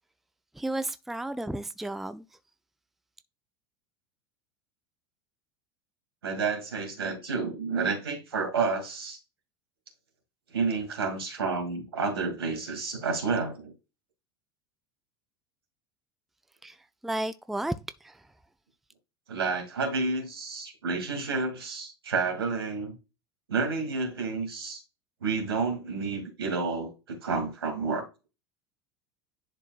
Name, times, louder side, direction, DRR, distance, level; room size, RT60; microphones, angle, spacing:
voice 1, 0.5-2.3 16.6-16.8 17.0-17.7 18.0-18.3, right 1 dB, ahead, 0.4 m, -33 dB
voice 2, 6.2-9.2 10.5-13.7 19.3-23.0 23.5-24.8 25.2-28.1, right 4 dB, 75° right, 2.3 m, -30 dB
10.5 x 4.5 x 2.4 m
figure-of-eight pair, 75°, 13 cm